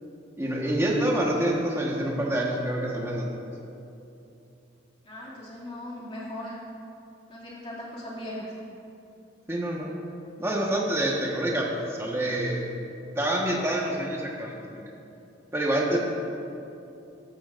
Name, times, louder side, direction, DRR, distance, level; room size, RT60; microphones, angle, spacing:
voice 1, 0.4-3.3 9.5-9.9 10.4-12.6 13.2-14.8 15.5-16.0, right 1 dB, 15° right, -2 dB, 1.3 m, -27 dB
voice 2, 5.0-6.6 7.3-8.6, left 1 dB, 30° left, -6 dB, 2.3 m, -38 dB
13.0 x 12.0 x 2.5 m, 2.8 s
head